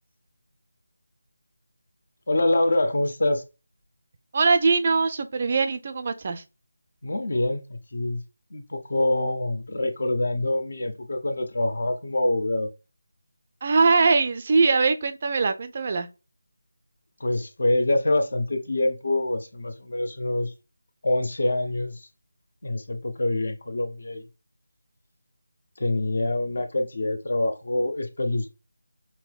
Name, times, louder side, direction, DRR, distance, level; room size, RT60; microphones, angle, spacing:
voice 1, 2.3-3.4 7.0-8.2 8.5-12.7 17.2-20.5 21.0-22.1 22.6-24.2 25.8-28.5, left 1 dB, 50° left, 0.6 m, -25 dB
voice 2, 4.3-6.4 13.6-16.1, right 4 dB, 35° right, 0.4 m, -22 dB
5.4 x 2.1 x 2.2 m
figure-of-eight pair, 160°, 0 cm